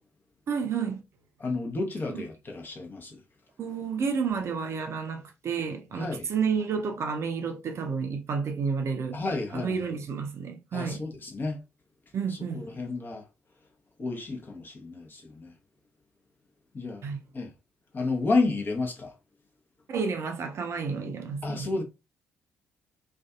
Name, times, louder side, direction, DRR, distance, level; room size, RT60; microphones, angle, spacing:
voice 1, 0.5-1.0 2.1-2.2 3.6-9.2 9.5-11.0 12.1-12.6 17.0-17.2 19.9-21.7, right 5 dB, 45° right, 0.5 m, -30 dB
voice 2, 1.4-3.2 5.9-6.3 9.1-9.8 10.7-11.6 12.3-13.2 14.0-15.5 16.7-17.0 17.3-17.5 17.9-19.1 21.4-21.8, left 3 dB, 35° left, 0.8 m, -31 dB
2.5 x 2.3 x 2.3 m
figure-of-eight pair, 45°, 6 cm